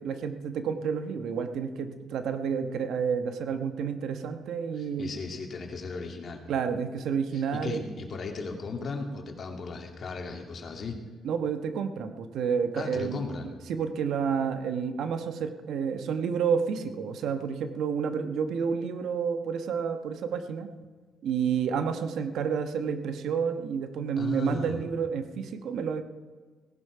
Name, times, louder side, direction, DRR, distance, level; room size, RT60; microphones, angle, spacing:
voice 1, 0.0-5.1 6.5-7.8 11.2-13.2 13.7-20.7 21.2-26.0, right 6 dB, 75° right, 8 dB, 1.1 m, -30 dB
voice 2, 4.8-6.4 7.3-11.0 12.8-13.5 24.2-24.8, left 4 dB, 50° left, 3 dB, 2.3 m, -36 dB
18.0 x 11.0 x 4.9 m, 1.4 s
cardioid pair, 90°, 0 cm